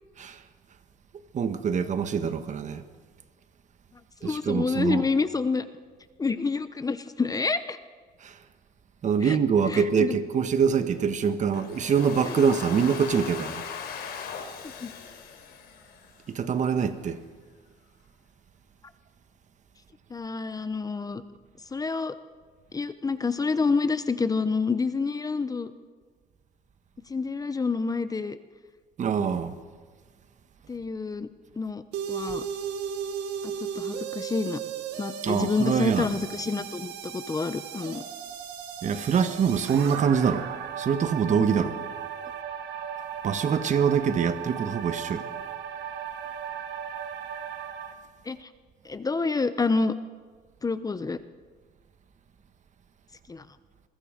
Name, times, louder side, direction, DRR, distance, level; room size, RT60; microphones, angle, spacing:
voice 1, 1.3-2.8 4.2-5.0 8.2-8.4 9.0-13.6 16.3-17.2 29.0-29.5 35.2-36.1 38.8-40.5 40.8-41.8 43.2-45.3, right 6 dB, 45° right, 1.5 m, -24 dB
voice 2, 4.2-5.7 6.2-7.8 9.2-9.4 9.7-10.2 12.4-12.5 14.8-14.9 20.1-21.2 21.7-22.2 22.7-25.7 27.1-28.4 30.7-31.3 31.6-31.8 32.1-32.4 33.4-34.6 35.0-38.0 48.3-48.5 48.8-49.9 50.6-51.2 53.3-53.4, left 4 dB, 20° left, 0.9 m, -28 dB
Domestic sounds home sounds, 11.5-16.5, left 7 dB, 70° left, 3.8 m, -39 dB
sound 1, 31.9-47.9, right 8 dB, 85° right, 2.0 m, -36 dB
27.5 x 22.0 x 5.2 m
cardioid pair, 110°, 17 cm